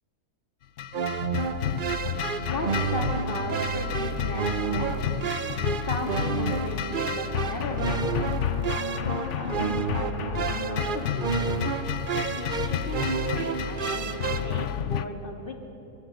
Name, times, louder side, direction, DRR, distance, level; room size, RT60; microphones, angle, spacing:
sound 1, 0.8-15.1, left 8 dB, 60° left, 1.0 m, -31 dB
sound 2, 0.9-14.7, right 6 dB, 45° right, 0.7 m, -30 dB
voice 1, 2.5-5.2 5.7-8.2 9.0-11.7 12.3-15.6, left 1 dB, 35° left, 2 dB, 3.0 m, -36 dB
24.5 x 24.0 x 6.4 m, 3.0 s
omnidirectional pair, 1.6 m